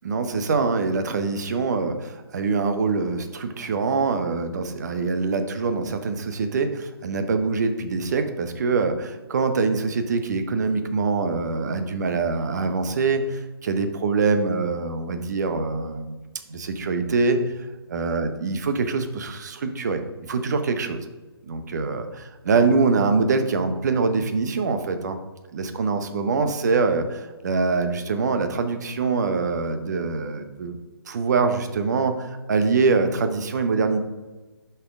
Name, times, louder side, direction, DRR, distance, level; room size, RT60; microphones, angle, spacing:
voice 1, 0.0-16.1 16.5-21.0 21.4-25.2 25.5-30.8 31.1-34.0, right 4 dB, 45° right, 8 dB, 0.9 m, -24 dB
9.8 x 5.7 x 3.7 m, 1.2 s
figure-of-eight pair, 140°, 13 cm